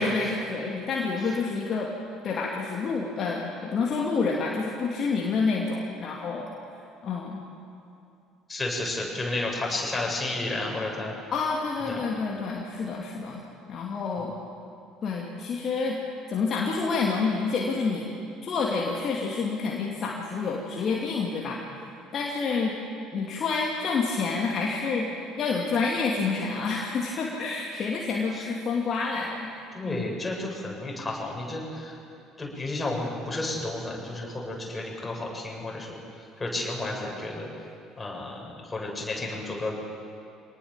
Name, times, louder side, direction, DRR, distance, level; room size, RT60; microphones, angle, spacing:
voice 1, 0.0-1.9 2.2-6.5 7.0-7.4 11.3-13.4 13.7-14.3 15.0-16.0 16.3-18.1 18.4-22.8 23.1-30.1, left 4 dB, 40° left, -1 dB, 2.6 m, -28 dB
voice 2, 8.5-11.1 11.9-12.0 29.7-31.9 32.4-36.0 36.4-37.5 38.0-39.7, left 2 dB, 15° left, -2 dB, 7.5 m, -32 dB
26.0 x 19.0 x 7.4 m, 2.6 s
figure-of-eight pair, 55°, 0 cm